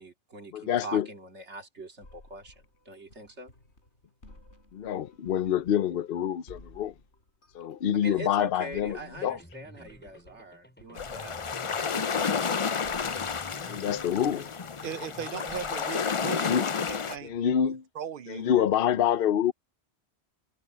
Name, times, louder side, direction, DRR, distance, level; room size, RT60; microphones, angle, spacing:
voice 1, 0.0-2.5 2.9-3.5 8.0-11.9, right 1 dB, 85° right, 2.7 m, -42 dB
voice 2, 0.5-1.1 4.7-6.9 7.5-9.4 13.7-14.5 16.3-16.7 17.2-17.8 18.3-19.5, left 9 dB, 60° left, 0.8 m, -27 dB
sound 1, 2.0-17.4, left 2 dB, 80° left, 4.9 m, -56 dB
sound 2, 8.7-15.3, equal, 10° left, 6.0 m, -52 dB
sound 3, 10.9-17.2, left 6 dB, 40° left, 0.5 m, -31 dB
voice 3, 14.8-17.3 17.9-18.5, right 8 dB, 60° right, 0.7 m, -38 dB
omnidirectional pair, 1.1 m